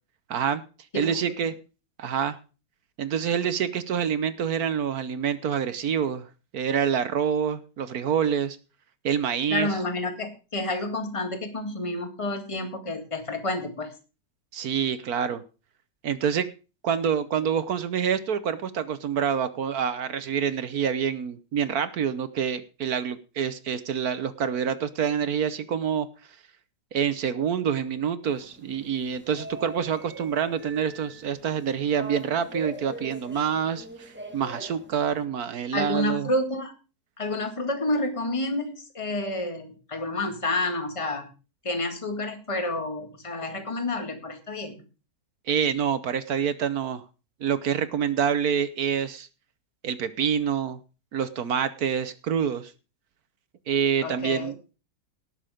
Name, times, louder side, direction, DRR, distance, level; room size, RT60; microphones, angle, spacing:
voice 1, 0.3-0.6 0.9-1.5 2.0-2.4 3.0-6.3 6.5-8.6 9.0-9.7 14.5-15.4 16.0-16.5 16.8-26.1 26.9-36.3 45.5-47.0 47.4-49.3 49.8-50.8 51.1-52.7 53.7-54.5, right 8 dB, 65° right, 13 dB, 1.3 m, -27 dB
voice 2, 9.5-13.9 35.7-36.7 37.2-41.3 41.6-44.7 54.0-54.5, left 2 dB, 20° left, 5 dB, 2.0 m, -29 dB
sound 1, 28.2-35.2, right 1 dB, 5° right, 1.6 m, -42 dB
18.0 x 6.8 x 5.1 m, 0.34 s
omnidirectional pair, 1.8 m